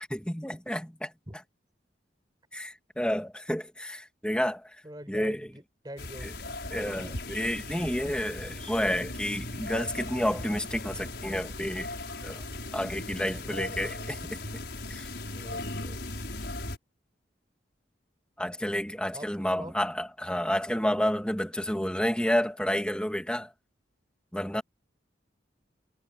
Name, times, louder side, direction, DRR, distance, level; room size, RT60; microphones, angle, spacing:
voice 1, 0.1-1.1 2.5-4.8 5.1-5.4 6.2-6.3 6.7-11.9 12.2-12.4 12.7-14.6 14.9-15.1 18.4-23.5 24.3-24.6, equal, 5° left, 2.2 m, -30 dB
voice 2, 4.8-6.3 13.4-14.2 15.3-16.3 19.1-19.3 19.5-19.7, right 1 dB, 20° right, 6.1 m, -44 dB
sound 1, 6.0-16.8, left 2 dB, 60° left, 6.6 m, -38 dB
head